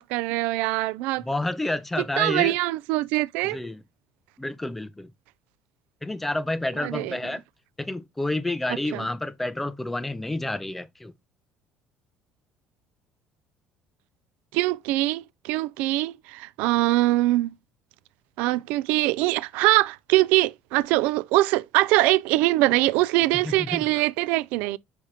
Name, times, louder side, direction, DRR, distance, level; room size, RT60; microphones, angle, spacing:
voice 1, 0.0-1.2 2.2-3.6 6.8-7.2 8.9-9.1 14.5-17.5 18.4-24.8, right 18 dB, 90° right, 0.4 m, -23 dB
voice 2, 1.2-2.6 3.4-3.8 4.4-5.1 6.0-7.4 7.8-11.1 23.3-24.0, left 2 dB, 5° left, 0.4 m, -29 dB
5.1 x 5.0 x 4.1 m
cardioid pair, 175°, 3 cm